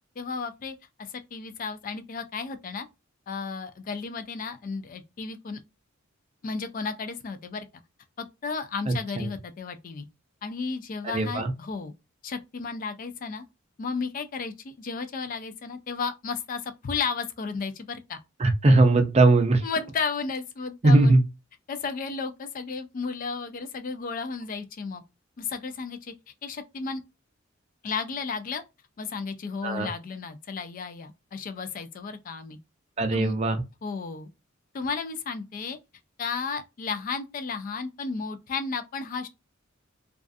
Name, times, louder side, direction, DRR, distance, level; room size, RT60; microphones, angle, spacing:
voice 1, 0.2-2.9 3.3-5.6 6.4-7.7 8.2-10.1 10.4-11.9 12.2-13.4 13.8-18.2 19.6-21.2 21.7-25.0 25.4-26.1 26.4-27.0 27.8-28.6 29.0-32.6 33.1-33.4 33.8-34.3 34.7-35.8 36.2-39.3, left 5 dB, 40° left, 0.3 m, -33 dB
voice 2, 8.9-9.3 11.0-11.5 18.4-19.6 20.8-21.2 29.6-29.9 33.0-33.6, right 2 dB, 30° right, 0.5 m, -20 dB
2.3 x 2.3 x 2.4 m
head